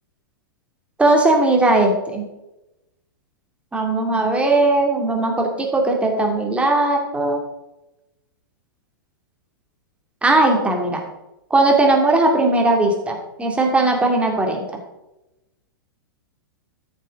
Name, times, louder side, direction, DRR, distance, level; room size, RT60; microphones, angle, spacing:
voice 1, 1.0-2.2 3.7-7.4 10.2-11.0 11.5-14.8, right 2 dB, 10° right, 2 dB, 2.4 m, -18 dB
13.5 x 7.4 x 3.7 m, 0.96 s
hypercardioid pair, 110°, 12 cm